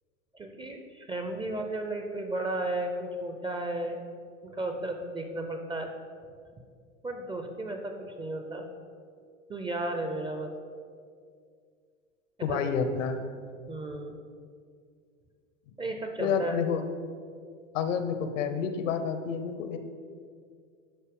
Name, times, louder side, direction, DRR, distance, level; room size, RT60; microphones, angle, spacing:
voice 1, 0.3-4.0 4.4-5.9 7.0-8.7 9.5-10.5 12.5-12.7 13.7-14.2 15.8-16.6, right 1 dB, 15° right, 5 dB, 0.4 m, -34 dB
voice 2, 12.4-13.2 16.2-16.8 17.7-19.8, left 6 dB, 70° left, 9 dB, 0.8 m, -29 dB
11.5 x 4.1 x 3.6 m, 2.2 s
hypercardioid pair, 100°, 40 cm